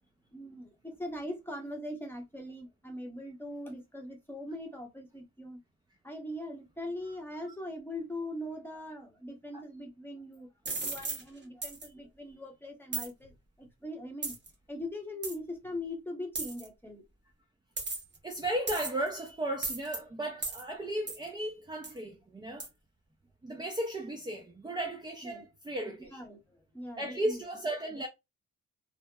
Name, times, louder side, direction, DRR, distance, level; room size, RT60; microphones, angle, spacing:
voice 1, 0.3-5.6 6.0-10.5 10.8-14.3 14.7-17.0 25.2-25.4 26.1-27.4, left 1 dB, 5° left, 0.8 m, -41 dB
sound 1, 10.7-11.2 11.6-11.9 12.9-13.1 14.2-14.5 15.2-15.4 16.4-16.7 17.8-18.2 18.7-19.1 19.6-20.0 20.4-20.6 21.1-21.2 21.8-22.0 22.6-22.7, right 3 dB, 30° right, 0.9 m, -35 dB
voice 2, 18.2-22.7 23.4-26.2 27.0-28.1, right 1 dB, 15° right, 0.4 m, -35 dB
2.7 x 2.0 x 2.2 m
cardioid pair, 105°, 35 cm